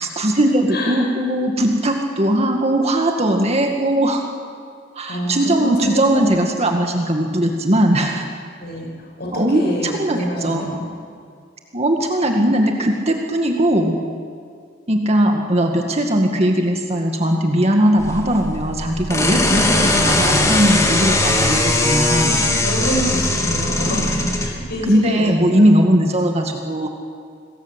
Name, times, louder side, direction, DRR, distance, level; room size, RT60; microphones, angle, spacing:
voice 1, 0.0-4.2 5.0-8.3 9.3-10.7 11.7-14.1 14.9-22.4 24.9-26.9, right 1 dB, 35° right, 2 dB, 2.0 m, -19 dB
voice 2, 0.7-1.1 5.1-6.3 8.6-8.9 9.2-10.8 22.1-25.7, equal, 60° left, -1 dB, 7.7 m, -26 dB
sound 1, 18.0-24.5, left 2 dB, 15° left, 3.2 m, -19 dB
27.5 x 20.5 x 8.3 m, 2.2 s
head